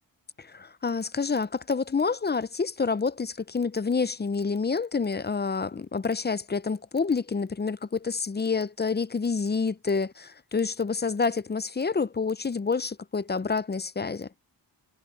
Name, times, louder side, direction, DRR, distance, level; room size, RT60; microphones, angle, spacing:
voice 1, 0.4-14.3, left 4 dB, 25° left, 0.5 m, -28 dB
wide cardioid pair, 110°, 45 cm